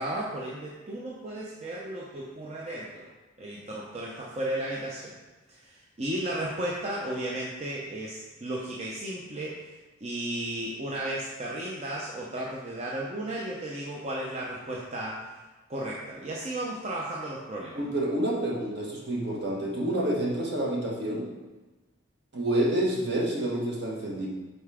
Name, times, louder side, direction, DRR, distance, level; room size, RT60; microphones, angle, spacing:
voice 1, 0.0-3.1 3.4-5.2 5.5-9.8 10.0-15.4 15.7-17.8, right 1 dB, 30° right, -4 dB, 0.6 m, -34 dB
voice 2, 17.7-21.3 22.3-24.3, right 1 dB, 55° right, -3 dB, 1.4 m, -28 dB
5.3 x 4.7 x 4.8 m, 1.2 s
head